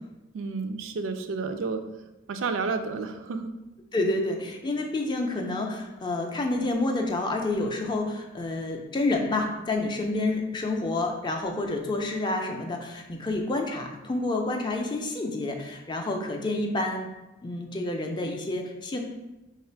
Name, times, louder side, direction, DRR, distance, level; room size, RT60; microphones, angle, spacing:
voice 1, 0.3-1.9 2.3-3.5, right 4 dB, 75° right, 7 dB, 0.4 m, -31 dB
voice 2, 3.9-17.1 17.4-19.0, left 2 dB, 25° left, 3 dB, 0.4 m, -29 dB
3.3 x 2.4 x 4.3 m, 1.0 s
head